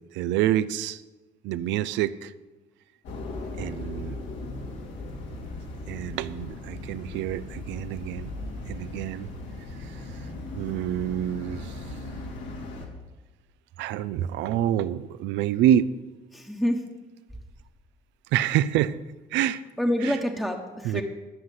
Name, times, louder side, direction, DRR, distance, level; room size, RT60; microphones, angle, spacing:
voice 1, 0.1-1.0 1.4-2.3 3.6-4.2 5.9-8.3 8.7-9.3 10.5-11.7 13.8-15.9 18.3-19.0 19.3-19.6 20.0-20.2 20.8-21.0, right 11 dB, 80° right, 15 dB, 0.5 m, -26 dB
sound 1, 3.0-12.9, left 2 dB, 75° left, 2.5 m, -38 dB
voice 2, 16.3-16.9 19.8-21.0, equal, ahead, 2 dB, 1.2 m, -27 dB
12.5 x 5.7 x 7.7 m, 1.2 s
supercardioid pair, 80°, 19 cm